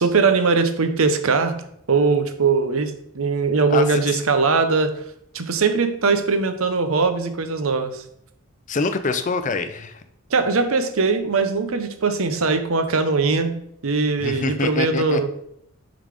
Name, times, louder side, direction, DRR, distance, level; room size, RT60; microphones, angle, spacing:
voice 1, 0.0-1.6 1.9-4.9 5.3-8.0 10.3-13.6 13.8-15.3, right 4 dB, 75° right, 9 dB, 0.7 m, -20 dB
voice 2, 3.7-4.2 8.7-10.0 14.2-15.3, left 4 dB, 35° left, 10 dB, 0.5 m, -25 dB
6.8 x 3.9 x 4.9 m, 0.73 s
head